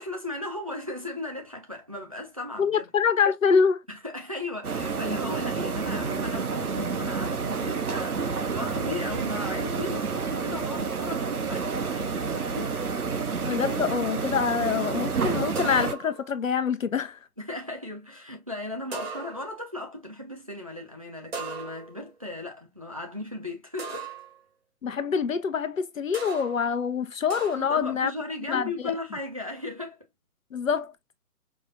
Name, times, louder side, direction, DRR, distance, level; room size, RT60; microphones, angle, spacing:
voice 1, 0.0-2.9 3.9-12.8 17.4-24.1 27.6-30.1, left 2 dB, 25° right, 0.5 m, -37 dB
voice 2, 2.6-3.8 13.5-17.2 24.8-28.1 28.5-28.9 30.5-30.9, left 6 dB, 55° left, 0.7 m, -25 dB
sound 1, 4.6-15.9, right 5 dB, 65° right, 0.9 m, -29 dB
sound 2, 15.6-16.3 18.9-19.7 21.3-22.1 23.8-24.4 26.1-26.6 27.3-27.8, right 4 dB, 40° right, 1.1 m, -38 dB
4.9 x 2.4 x 2.6 m
figure-of-eight pair, 150°, 47 cm